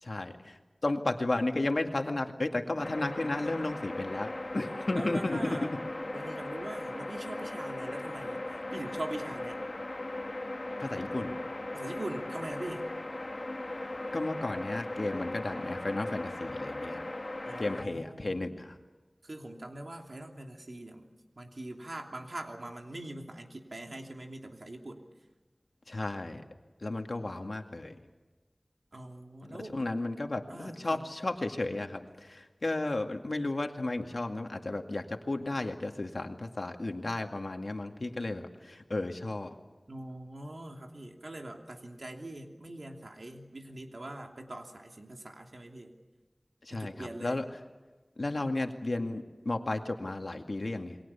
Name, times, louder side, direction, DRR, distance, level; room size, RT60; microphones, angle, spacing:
voice 1, 0.0-5.8 10.8-11.4 13.7-13.9 14.1-17.0 17.6-18.8 25.9-26.4 26.8-28.0 29.5-39.6 46.6-47.5 48.2-51.0, left 2 dB, 75° left, 4 dB, 2.1 m, -33 dB
sound 1, 2.8-17.8, left 2 dB, 55° left, 1.9 m, -38 dB
voice 2, 4.9-5.7 6.1-8.4 8.7-9.6 11.7-12.9 17.4-18.3 19.2-21.1 21.4-25.0 28.9-29.8 30.5-31.0 39.9-45.9 46.7-47.4, right 1 dB, 75° right, 3 dB, 3.0 m, -42 dB
28.5 x 23.0 x 7.1 m, 1.2 s
wide cardioid pair, 50°, 0 cm